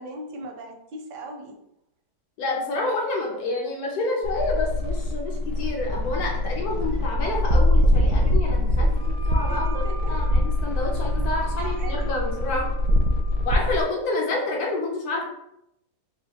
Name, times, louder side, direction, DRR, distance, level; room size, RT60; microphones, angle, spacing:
voice 1, 0.0-1.6 9.5-10.1 11.6-12.2, right 1 dB, 85° right, 3 dB, 1.2 m, -38 dB
voice 2, 2.4-9.7 10.0-12.7 13.4-15.2, left 2 dB, 70° left, -1 dB, 1.1 m, -28 dB
sound 1, 4.2-13.8, left 1 dB, 70° right, 0.8 m, -23 dB
Wind instrument woodwind instrument, 9.0-13.9, right 2 dB, 90° left, 1.3 m, -43 dB
3.3 x 3.0 x 2.7 m, 0.81 s
omnidirectional pair, 1.8 m